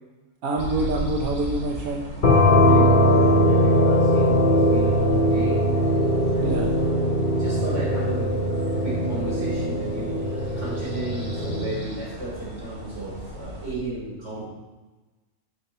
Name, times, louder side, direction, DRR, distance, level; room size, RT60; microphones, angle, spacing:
voice 1, 0.4-2.1 6.3-6.8, right 2 dB, 90° right, 1 dB, 1.4 m, -26 dB
sound 1, 0.6-13.7, right 1 dB, 30° right, 2.9 m, -37 dB
sound 2, 2.2-11.7, equal, 40° left, 1.3 m, -20 dB
voice 2, 2.5-5.7 6.3-8.4 8.8-10.2 10.5-14.5, right 2 dB, 55° right, -5 dB, 4.3 m, -34 dB
12.5 x 10.0 x 3.1 m, 1.2 s
omnidirectional pair, 1.5 m